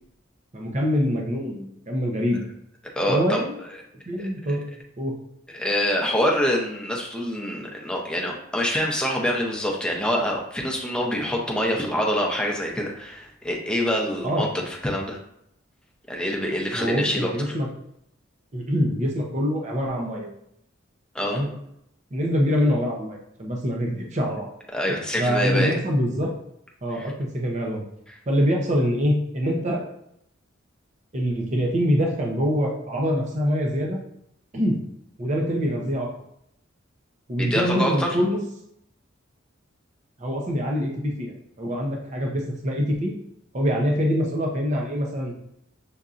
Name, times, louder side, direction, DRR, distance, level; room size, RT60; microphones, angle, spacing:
voice 1, 0.5-2.4 3.1-3.5 4.1-4.6 5.0-5.2 14.2-14.5 16.7-17.7 18.5-20.3 21.2-21.5 22.1-24.5 24.9-26.3 26.8-27.8 28.3-29.8 31.1-34.0 34.5-34.8 35.2-36.1 37.3-38.4 40.2-41.3 41.6-43.1 43.5-45.3, equal, 35° right, 0 dB, 0.7 m, -24 dB
voice 2, 3.0-3.4 4.2-4.3 5.5-15.2 16.1-17.3 21.1-21.4 24.7-25.7 26.9-27.1 37.4-38.1, equal, 5° left, -1 dB, 0.7 m, -25 dB
6.8 x 2.6 x 2.5 m, 0.76 s
head